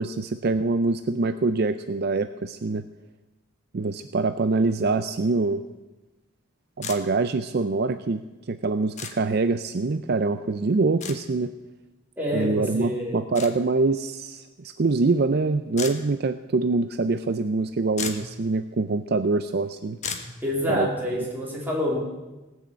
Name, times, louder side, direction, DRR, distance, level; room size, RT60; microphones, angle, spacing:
voice 1, 0.0-2.8 3.7-5.6 6.8-8.2 8.5-11.5 12.3-20.0 20.7-20.9, right 3 dB, 50° right, 10 dB, 0.5 m, -24 dB
sound 1, 6.8-7.0 9.0-9.1 11.0-11.2 13.3-13.5 15.8-15.9 17.6-17.7 17.9-18.3 20.0-20.3, left 6 dB, 35° left, 1.2 m, -33 dB
voice 2, 12.2-13.2 20.4-22.0, equal, 10° right, -4 dB, 3.6 m, -27 dB
18.5 x 6.3 x 8.4 m, 1.1 s
head